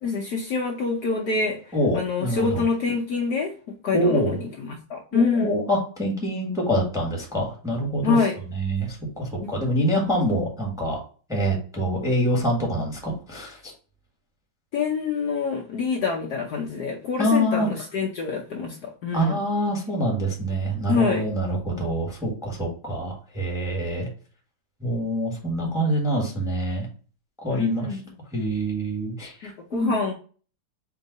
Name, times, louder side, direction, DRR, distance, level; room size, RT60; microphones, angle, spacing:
voice 1, 0.0-5.5 8.0-8.4 9.4-9.6 14.7-19.4 20.9-21.3 27.5-28.1 29.4-30.1, left 4 dB, 65° left, 0 dB, 1.1 m, -26 dB
voice 2, 1.7-2.6 3.9-4.4 5.1-8.2 8.5-11.0 11.3-13.7 17.2-17.7 19.1-24.1 24.8-26.9 27.4-27.9 28.3-29.9, equal, ahead, -1 dB, 1.2 m, -25 dB
4.5 x 2.9 x 4.0 m, 0.39 s
omnidirectional pair, 2.2 m